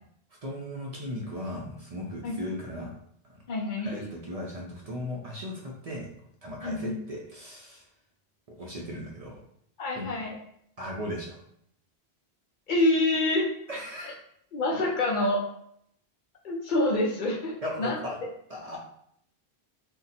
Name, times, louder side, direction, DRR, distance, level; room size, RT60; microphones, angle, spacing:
voice 1, 0.4-2.9 3.2-3.4 3.8-6.1 6.4-7.8 8.5-9.4 10.0-10.2 10.8-11.4 13.7-14.2 17.6-18.2 18.5-18.8, left 1 dB, 45° right, -2 dB, 0.6 m, -37 dB
voice 2, 3.5-4.1 6.6-7.0 9.8-10.4 12.7-13.5 14.5-15.4 16.4-18.0, left 2 dB, 55° left, 0 dB, 0.7 m, -27 dB
2.7 x 2.2 x 4.0 m, 0.69 s
omnidirectional pair, 1.1 m